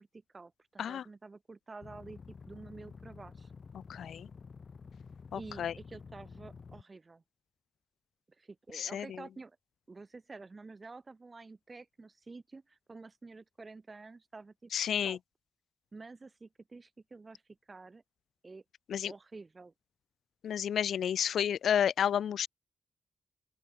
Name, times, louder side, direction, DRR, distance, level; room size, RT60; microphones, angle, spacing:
voice 1, 0.0-3.5 5.3-7.2 8.4-9.6 9.9-14.7 15.0-15.2 15.9-17.4 17.7-18.0 18.4-18.6 19.1-19.7, right 3 dB, 35° right, 4.5 m, -49 dB
sound 1, 1.8-6.8, left 5 dB, 50° left, 2.8 m, -50 dB
voice 2, 3.9-4.3 5.3-5.7 8.7-9.1 14.7-15.2 18.9-19.1 20.4-22.5, left 9 dB, 85° left, 0.4 m, -31 dB
open air
cardioid pair, 70°, 0 cm